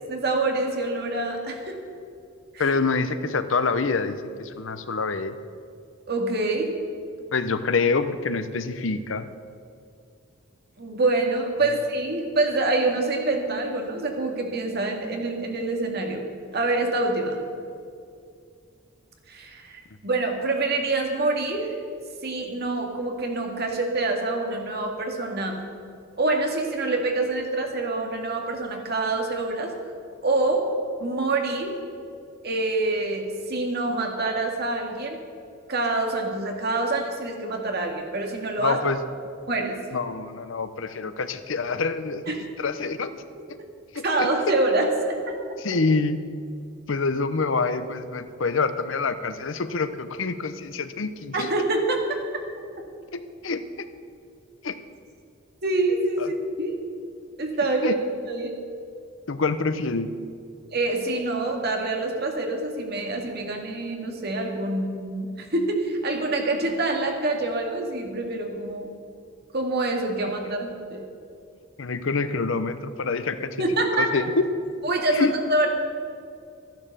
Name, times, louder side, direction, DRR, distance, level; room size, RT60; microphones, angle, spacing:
voice 1, 0.1-1.8 2.5-2.8 6.1-6.7 10.8-16.3 16.5-17.4 19.3-21.7 22.2-25.6 26.2-29.7 30.2-30.6 31.0-31.8 32.4-35.2 35.7-38.8 39.5-39.8 42.3-42.4 44.0-45.4 51.3-52.2 55.6-56.8 57.4-58.0 58.3-58.6 60.7-68.9 69.5-71.0 73.6-74.1 74.8-75.7, right 2 dB, 55° right, 2 dB, 2.0 m, -26 dB
voice 2, 2.6-5.4 7.3-9.3 38.6-39.0 39.9-43.1 43.9-44.3 45.6-46.2 46.9-51.5 53.1-53.9 54.6-54.8 56.2-56.3 57.8-57.9 59.3-60.1 71.8-73.6 74.0-74.4 75.1-75.3, left 4 dB, 70° left, 12 dB, 0.7 m, -26 dB
13.0 x 10.5 x 6.8 m, 2.3 s
head